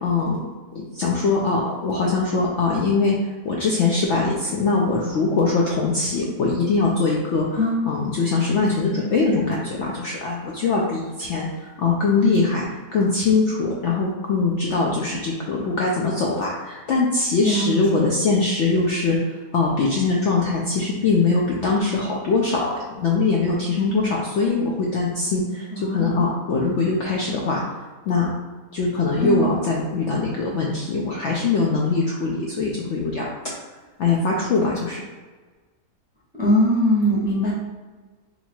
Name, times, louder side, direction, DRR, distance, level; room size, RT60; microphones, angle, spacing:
voice 1, 0.0-0.4 0.8-3.2 3.4-7.5 7.9-11.5 11.8-12.6 12.9-19.2 19.5-25.6 25.9-27.6 28.1-28.3 28.7-33.3 34.0-35.0, left 3 dB, 65° left, -2 dB, 0.7 m, -22 dB
voice 2, 7.5-7.8 17.4-18.1 25.7-26.3 29.2-29.4 36.4-37.5, equal, 5° right, -8 dB, 0.7 m, -21 dB
2.8 x 2.8 x 4.3 m, 1.3 s
omnidirectional pair, 1.6 m